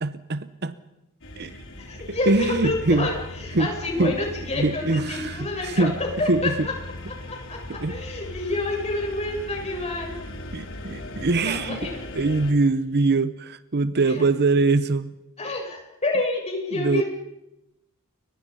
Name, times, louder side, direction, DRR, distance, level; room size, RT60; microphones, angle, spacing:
voice 1, 0.0-0.7 1.4-1.5 2.1-3.1 3.5-3.7 4.0-4.2 4.6-5.9 6.3-6.7 7.7-8.0 10.5-15.1 16.7-17.0, right 3 dB, 50° right, 0.9 m, -23 dB
sound 1, 1.2-12.5, left 1 dB, 65° left, 3.9 m, -38 dB
voice 2, 1.8-6.7 7.3-7.6 7.9-10.1 11.4-12.0 14.0-14.2 15.4-17.0, left 2 dB, 30° left, 7.9 m, -28 dB
29.5 x 24.5 x 5.6 m
head